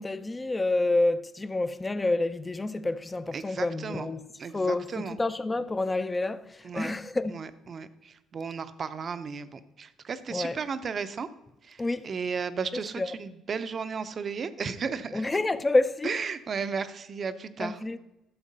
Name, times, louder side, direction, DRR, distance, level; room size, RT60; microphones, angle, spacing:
voice 1, 0.0-4.3 4.5-7.4 10.3-10.6 11.8-12.1 13.0-13.1 15.1-16.2 17.6-18.0, left 2 dB, 15° left, 0.5 m, -28 dB
voice 2, 3.3-4.1 4.4-5.2 6.6-6.9 7.3-11.3 11.6-15.2 16.0-17.8, right 5 dB, 40° right, 0.7 m, -34 dB
12.0 x 7.1 x 5.4 m
cardioid pair, 115°, 0 cm